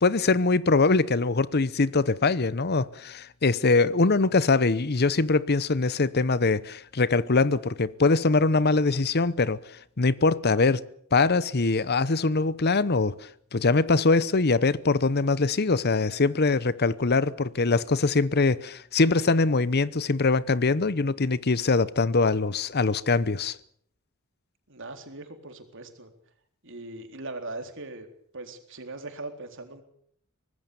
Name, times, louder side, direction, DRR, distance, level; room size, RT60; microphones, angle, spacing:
voice 1, 0.0-9.6 10.0-10.8 11.1-23.6, left 3 dB, 50° left, 0.8 m, -23 dB
voice 2, 24.7-26.1 26.6-28.1 28.3-29.8, right 2 dB, 60° right, 3.9 m, -40 dB
24.5 x 19.5 x 7.0 m
head